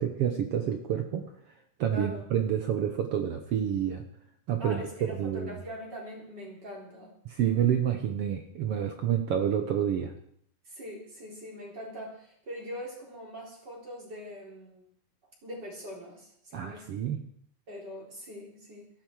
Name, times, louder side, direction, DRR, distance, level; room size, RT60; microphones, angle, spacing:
voice 1, 0.0-1.5 1.8-4.0 4.5-5.6 7.2-10.1 16.5-17.2, right 9 dB, 75° right, 6 dB, 1.4 m, -29 dB
voice 2, 1.9-2.2 4.6-7.1 10.7-14.8 15.4-16.9 17.7-18.9, equal, 30° right, -2 dB, 4.4 m, -42 dB
17.0 x 14.0 x 4.6 m, 0.65 s
omnidirectional pair, 3.9 m